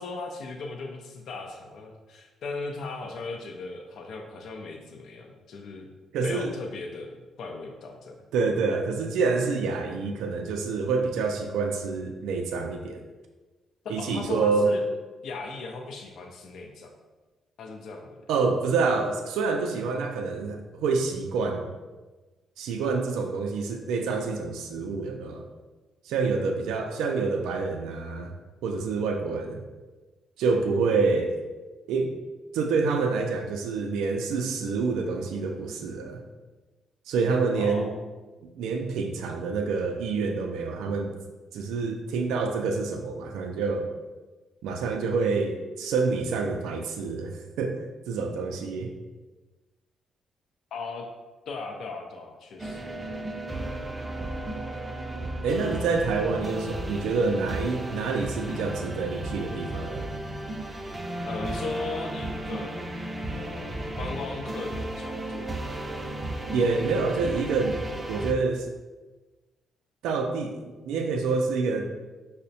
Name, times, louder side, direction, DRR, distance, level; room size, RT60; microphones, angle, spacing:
voice 1, 0.0-5.9 6.2-8.2 13.8-14.8 15.2-16.9 17.6-18.2 37.6-37.9 50.7-51.1 51.5-52.8 61.2-62.9 63.3-65.8, left 3 dB, 70° left, 2 dB, 0.4 m, -37 dB
voice 2, 6.1-6.5 8.3-13.0 13.9-14.7 18.3-21.7 22.6-25.4 26.0-28.3 28.6-29.6 30.4-31.4 31.9-32.1 32.5-36.2 37.1-37.9 38.6-41.1 41.5-43.9 44.6-47.8 48.1-48.9 55.4-60.1 66.5-67.8 68.1-68.7 70.0-72.1, right 4 dB, 90° right, 3 dB, 0.3 m, -27 dB
sound 1, 52.6-68.3, right 1 dB, 20° right, 0.4 m, -34 dB
5.5 x 2.1 x 2.6 m, 1.2 s
cardioid pair, 90°, 0 cm